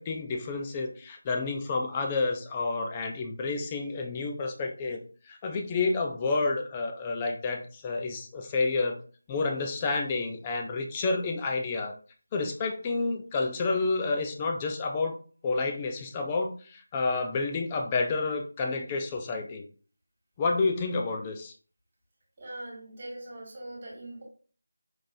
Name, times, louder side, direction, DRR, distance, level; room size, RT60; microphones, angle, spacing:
voice 1, 0.0-9.0 9.3-11.9 12.3-15.2 15.4-19.6 20.4-21.5, left 3 dB, 15° left, 3 dB, 0.5 m, -29 dB
voice 2, 22.4-24.2, right 1 dB, 30° right, -2 dB, 1.9 m, -41 dB
4.9 x 3.8 x 2.6 m, 0.41 s
figure-of-eight pair, 170°, 0 cm